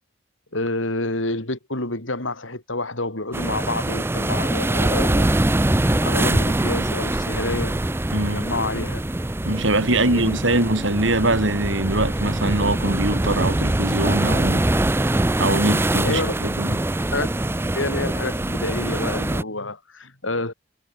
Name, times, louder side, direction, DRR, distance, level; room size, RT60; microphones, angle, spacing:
voice 1, 0.5-5.4 6.0-9.0 9.8-10.4 16.0-16.3 17.1-17.3 17.7-20.5, left 2 dB, 70° left, 4.7 m, -28 dB
sound 1, 3.3-19.4, right 1 dB, 10° right, 0.5 m, -23 dB
voice 2, 8.1-8.5 9.5-14.7 15.4-16.8, right 2 dB, 65° right, 5.5 m, -22 dB
head